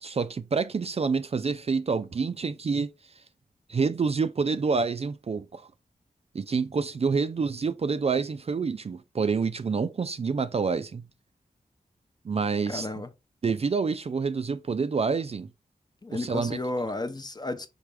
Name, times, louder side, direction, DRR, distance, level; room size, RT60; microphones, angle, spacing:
voice 1, 0.0-2.9 3.7-5.6 6.3-11.1 12.2-12.9 13.4-15.5 16.1-16.6, right 5 dB, 40° right, 0.4 m, -27 dB
voice 2, 12.7-13.1 16.0-17.7, left 2 dB, 25° left, 0.7 m, -32 dB
4.2 x 3.3 x 3.4 m
cardioid pair, 45°, 16 cm